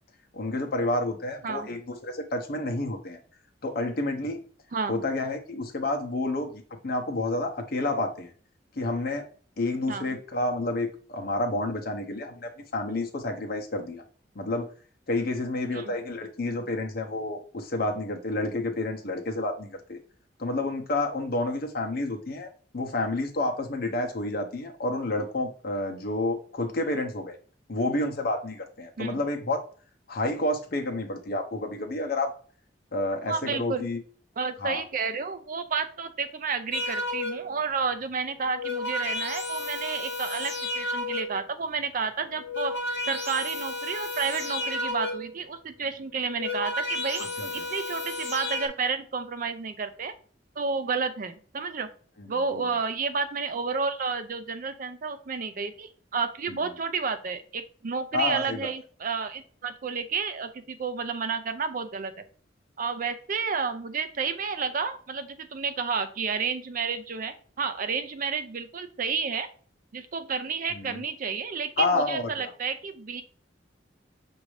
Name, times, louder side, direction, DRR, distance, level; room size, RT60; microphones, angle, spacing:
voice 1, 0.3-3.2 3.6-4.4 4.9-8.3 8.8-9.2 9.6-14.0 14.3-14.7 15.1-20.0 20.4-27.4 27.7-29.6 30.1-32.3 32.9-34.0 34.6-34.8 47.4-47.5 52.2-52.6 56.5-56.6 58.1-58.7 70.7-71.0 71.8-72.5, left 2 dB, 55° left, 3 dB, 0.8 m, -29 dB
voice 2, 4.7-5.0 9.9-10.1 15.7-15.9 29.0-29.2 33.3-33.8 34.4-42.7 43.1-50.1 50.6-51.9 52.3-62.1 62.8-69.5 69.9-73.2, right 5 dB, 50° right, 9 dB, 0.5 m, -31 dB
sound 1, 36.7-37.6 38.4-41.5 42.2-45.4 46.2-48.7, left 2 dB, 80° left, 1.2 m, -32 dB
6.1 x 2.7 x 3.1 m, 0.43 s
head